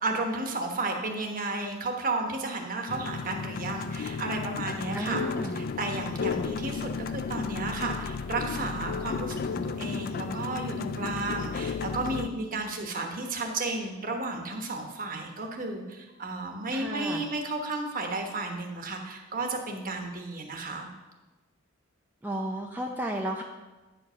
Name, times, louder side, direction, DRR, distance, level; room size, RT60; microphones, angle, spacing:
voice 1, 0.0-5.2 5.5-20.9, right 2 dB, 40° right, 3 dB, 1.2 m, -33 dB
sound 1, 2.9-12.3, left 5 dB, 45° left, 0.3 m, -33 dB
voice 2, 4.9-5.6 16.7-17.2 22.2-23.4, right 1 dB, 10° right, 0 dB, 0.5 m, -33 dB
9.4 x 5.0 x 5.7 m, 1.1 s
head